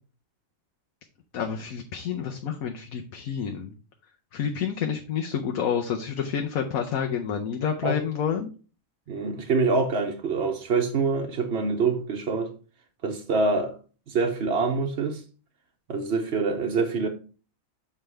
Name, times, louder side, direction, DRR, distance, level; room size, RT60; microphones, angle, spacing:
voice 1, 1.3-3.7 4.3-8.5, left 7 dB, 80° left, 1.2 m, -29 dB
voice 2, 9.1-12.5 13.0-13.7 14.1-15.2 15.9-17.1, right 4 dB, 55° right, 0.9 m, -25 dB
7.2 x 5.5 x 3.3 m
omnidirectional pair, 1.4 m